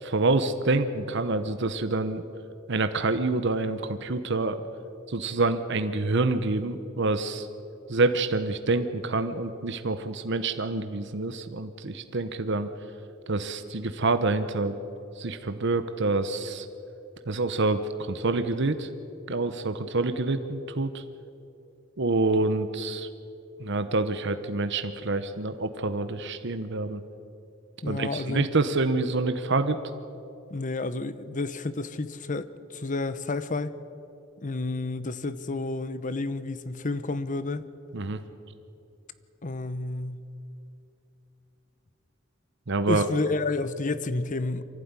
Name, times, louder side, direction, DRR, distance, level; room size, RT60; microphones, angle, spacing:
voice 1, 0.0-2.2 2.7-4.6 5.1-7.5 7.9-12.7 13.3-14.7 15.2-16.7 17.3-18.9 19.3-21.0 22.0-23.1 23.6-27.0 27.9-29.8 37.9-38.2 42.7-43.1, right 3 dB, 60° right, 9 dB, 1.0 m, -27 dB
voice 2, 27.8-28.5 30.5-33.7 34.4-37.7 39.4-40.2 42.9-44.6, left 3 dB, 40° left, 14 dB, 0.9 m, -30 dB
24.0 x 15.5 x 9.7 m, 2.7 s
head